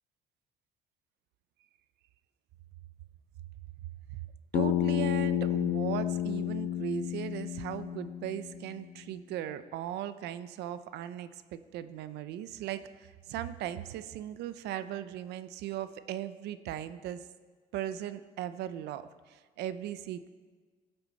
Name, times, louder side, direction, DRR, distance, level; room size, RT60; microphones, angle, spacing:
Bass guitar, 4.5-8.8, left 12 dB, 75° left, 0.5 m, -31 dB
voice 1, 4.5-17.2 17.7-20.3, right 11 dB, 80° right, 13 dB, 0.6 m, -38 dB
18.0 x 8.0 x 4.1 m, 1.5 s
cardioid pair, 110°, 17 cm